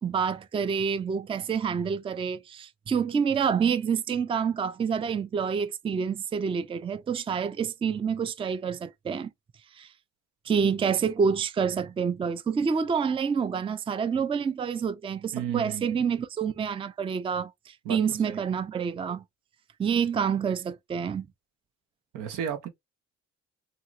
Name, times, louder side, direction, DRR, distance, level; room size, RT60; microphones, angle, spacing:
voice 1, 0.0-9.3 9.8-9.9 10.5-19.2 19.8-21.3, right 6 dB, 20° right, 0.3 m, -28 dB
voice 2, 15.3-16.0 17.8-18.0 18.3-18.4 22.1-22.7, right 8 dB, 90° right, 0.9 m, -33 dB
3.0 x 2.8 x 2.4 m
cardioid pair, 90°, 30 cm